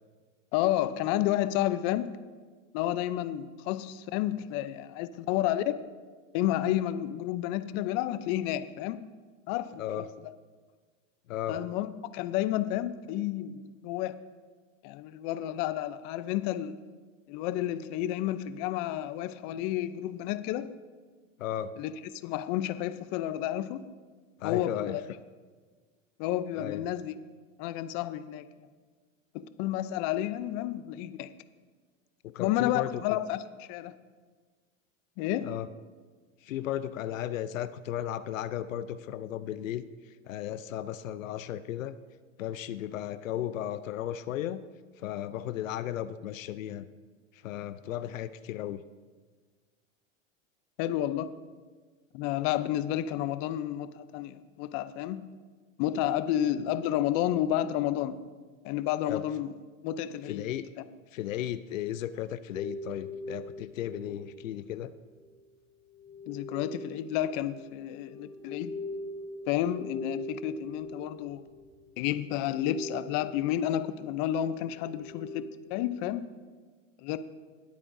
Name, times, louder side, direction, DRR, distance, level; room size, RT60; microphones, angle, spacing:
voice 1, 0.5-2.1 2.7-5.7 6.3-9.0 9.5-10.3 11.5-14.1 14.8-16.8 17.3-20.7 21.8-21.9 22.2-23.8 24.4-25.0 26.2-27.1 27.6-28.5 29.3-31.3 32.4-33.9 35.2-35.5 50.8-51.3 52.1-55.2 55.8-58.2 58.6-59.5 59.8-60.5 66.3-68.8 69.5-71.4 72.0-75.5 75.7-76.3 77.0-77.2, left 12 dB, 45° left, 13 dB, 0.6 m, -31 dB
voice 2, 11.3-11.6 21.4-21.7 24.4-25.0 26.6-26.8 32.2-33.0 35.4-35.7 36.4-39.8 40.3-42.0 42.4-44.6 45.0-46.9 47.4-48.8 59.1-59.2 60.2-60.7 61.1-64.9, left 11 dB, 90° left, 13 dB, 0.6 m, -35 dB
sound 1, 62.5-64.9 65.9-71.9 72.2-73.7 74.6-75.8, left 2 dB, 10° left, 1.3 m, -42 dB
19.5 x 8.4 x 2.7 m, 1.4 s
hypercardioid pair, 115°, 38 cm